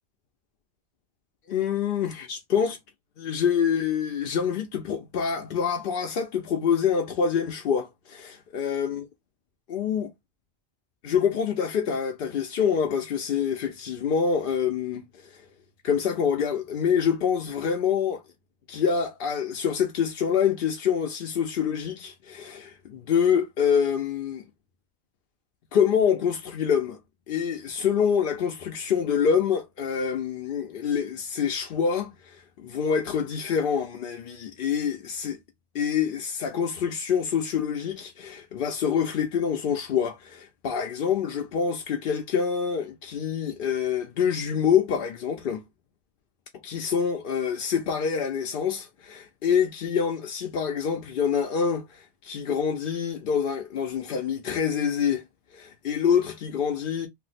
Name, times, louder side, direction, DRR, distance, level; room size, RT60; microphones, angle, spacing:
voice 1, 1.5-2.8 3.2-9.0 9.7-10.1 11.0-15.4 15.8-18.2 18.7-24.4 25.7-27.0 27.3-35.4 35.7-45.6 46.6-55.2 55.5-57.1, left 7 dB, 60° left, 0.7 m, -26 dB
2.6 x 2.1 x 3.9 m
omnidirectional pair, 1.1 m